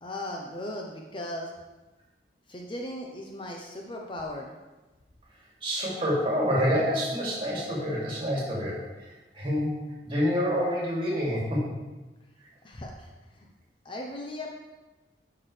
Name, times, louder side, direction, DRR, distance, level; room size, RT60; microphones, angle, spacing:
voice 1, 0.0-1.5 2.5-4.5 12.6-13.1 13.4-13.5 13.8-14.5, left 1 dB, 30° left, 0 dB, 0.7 m, -37 dB
voice 2, 5.6-9.8 10.0-11.7, equal, 30° right, -5 dB, 2.6 m, -27 dB
11.0 x 5.9 x 3.3 m, 1.1 s
head